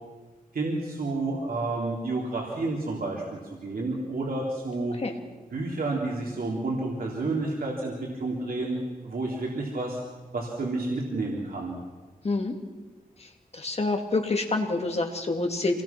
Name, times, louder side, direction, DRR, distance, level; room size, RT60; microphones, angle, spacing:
voice 1, 0.5-5.0 5.5-8.8 9.0-10.0 10.3-11.8, right 2 dB, 80° right, -2 dB, 3.6 m, -30 dB
voice 2, 13.5-15.8, left 3 dB, 45° left, 3 dB, 2.4 m, -27 dB
27.5 x 19.5 x 6.1 m, 1.3 s
wide cardioid pair, 135°, 15 cm